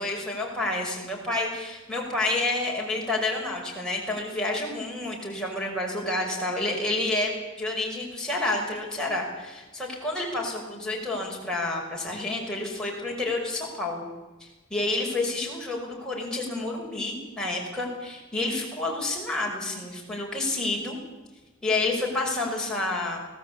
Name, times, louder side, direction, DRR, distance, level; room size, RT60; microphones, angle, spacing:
voice 1, 0.0-14.1 14.4-21.0 21.6-23.2, left 2 dB, 5° left, -3 dB, 6.0 m, -29 dB
25.0 x 18.0 x 8.5 m, 1.2 s
head